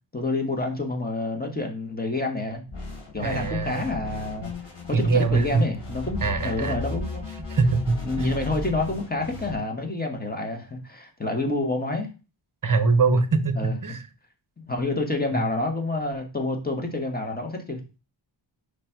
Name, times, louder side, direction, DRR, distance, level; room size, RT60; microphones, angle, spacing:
voice 1, 0.1-2.6 3.1-4.5 4.9-7.3 8.0-12.1 13.5-13.7 14.6-18.0, left 2 dB, 20° left, 1.3 m, -28 dB
sound 1, 2.7-9.6, left 3 dB, 55° left, 3.4 m, -35 dB
voice 2, 3.2-3.8 4.9-5.6 6.2-6.8 7.5-8.3 12.6-14.0 15.3-15.5, right 4 dB, 40° right, 1.0 m, -23 dB
5.0 x 4.2 x 4.5 m
wide cardioid pair, 125°, 49 cm